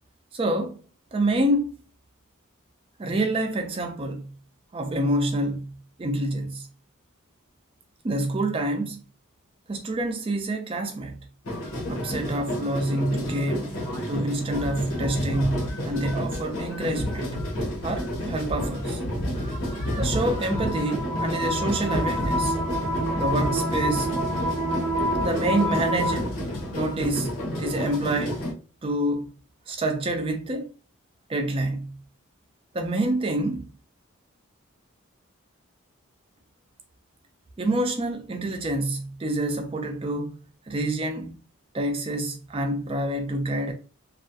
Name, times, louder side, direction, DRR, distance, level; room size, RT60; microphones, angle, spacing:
voice 1, 0.3-0.8 1.1-1.7 3.0-4.3 4.7-5.7 6.0-6.7 8.0-9.0 9.7-11.2 11.9-13.8 14.1-17.3 17.8-19.0 20.0-22.6 23.2-24.1 25.2-26.4 26.7-28.4 28.8-29.3 29.7-30.7 31.3-32.0 32.7-33.7 37.6-40.4 40.7-41.4 41.7-43.7, right 1 dB, 25° right, 0.3 m, -27 dB
sound 1, 11.4-28.5, equal, 75° left, 0.9 m, -30 dB
sound 2, 20.3-26.2, equal, 85° right, 0.5 m, -28 dB
2.3 x 2.1 x 2.6 m
head